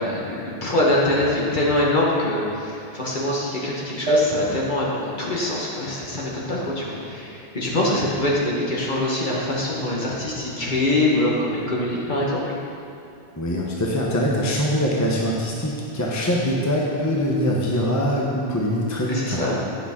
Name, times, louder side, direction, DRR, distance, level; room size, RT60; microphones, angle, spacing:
voice 1, 0.0-12.4 19.1-19.6, left 1 dB, 45° left, -4 dB, 1.4 m, -24 dB
sound 1, 4.1-7.0, equal, 85° right, 1.1 m, -28 dB
voice 2, 13.3-19.4, equal, 20° left, -3 dB, 0.7 m, -23 dB
9.9 x 5.8 x 3.6 m, 2.6 s
omnidirectional pair, 1.1 m